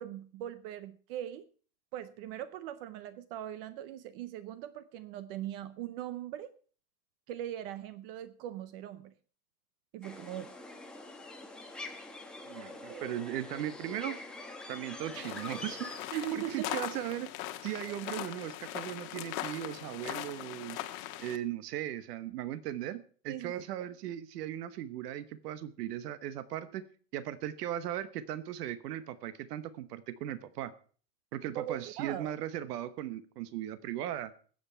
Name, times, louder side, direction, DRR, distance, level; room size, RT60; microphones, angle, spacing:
voice 1, 0.0-1.5 1.9-6.5 7.3-9.1 9.9-10.5 12.9-13.1 16.1-16.9 23.3-23.5 31.5-32.3, right 12 dB, 40° right, 15 dB, 0.6 m, -40 dB
sound 1, 10.0-16.0, left 2 dB, ahead, 1.0 m, -45 dB
voice 2, 12.5-14.2 14.7-17.3 17.6-20.8 21.2-26.8 27.1-30.7 31.3-34.3, right 12 dB, 90° right, 14 dB, 1.1 m, -38 dB
sound 2, 15.1-21.4, left 14 dB, 60° left, 1.4 m, -40 dB
21.0 x 8.0 x 4.4 m, 0.41 s
supercardioid pair, 165°, 46 cm